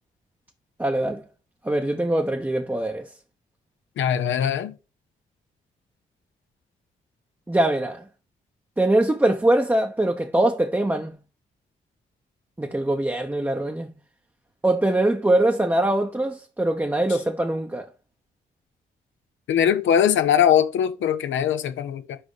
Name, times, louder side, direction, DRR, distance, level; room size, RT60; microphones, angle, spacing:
voice 1, 0.8-1.2 1.6-3.1 7.5-8.0 8.8-11.1 12.6-13.9 14.6-17.9, right 1 dB, 10° right, 0.8 m, -22 dB
voice 2, 4.0-4.7 19.5-22.2, left 9 dB, 70° left, 0.7 m, -21 dB
4.7 x 4.3 x 4.9 m
hypercardioid pair, 40°, 21 cm